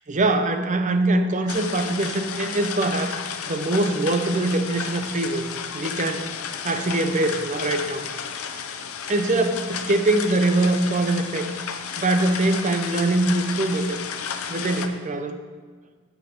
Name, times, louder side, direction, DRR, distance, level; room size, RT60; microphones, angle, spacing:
voice 1, 0.1-3.2 3.5-5.5 5.7-6.3 6.6-8.1 9.1-11.5 12.0-14.0 14.5-15.4, right 2 dB, 35° right, 7 dB, 0.7 m, -23 dB
sound 1, 1.5-14.9, left 7 dB, 90° left, 0.7 m, -33 dB
8.6 x 7.4 x 5.2 m, 1.5 s
head